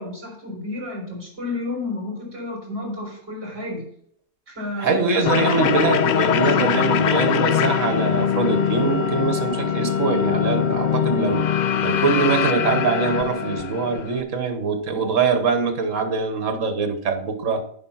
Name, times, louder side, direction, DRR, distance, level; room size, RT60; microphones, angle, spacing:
voice 1, 0.0-3.9 4.5-5.8 6.5-7.3, left 2 dB, 45° right, 4.2 m, -32 dB
voice 2, 4.8-11.5 11.8-17.6, right 5 dB, 65° right, 1.7 m, -23 dB
sound 1, 5.2-14.2, left 8 dB, 85° left, 0.4 m, -22 dB
8.8 x 5.7 x 5.7 m
omnidirectional pair, 1.4 m